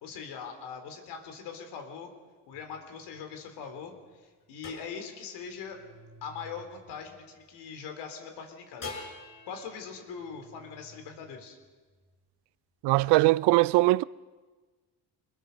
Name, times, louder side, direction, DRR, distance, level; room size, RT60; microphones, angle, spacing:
voice 1, 0.0-2.1 2.4-3.9 4.2-5.8 6.2-8.9 9.4-11.6, left 6 dB, 90° left, 3.6 m, -41 dB
sound 1, 2.5-7.8 8.8-12.2, left 3 dB, 55° left, 5.9 m, -49 dB
voice 2, 12.8-14.0, right 20 dB, 85° right, 0.5 m, -21 dB
26.0 x 21.0 x 5.3 m
cardioid pair, 115°, 39 cm